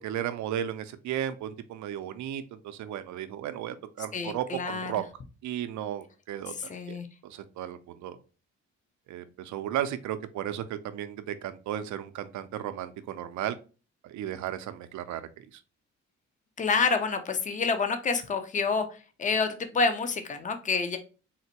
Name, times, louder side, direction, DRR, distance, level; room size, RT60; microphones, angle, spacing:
voice 1, 0.0-5.0 5.4-7.0 7.2-8.2 9.1-13.6 14.0-15.6, right 11 dB, 70° right, 12 dB, 0.5 m, -35 dB
voice 2, 4.1-4.9 6.6-7.1 16.6-21.0, left 4 dB, 25° left, 7 dB, 0.5 m, -28 dB
3.9 x 2.1 x 2.8 m, 0.35 s
cardioid pair, 90°, 30 cm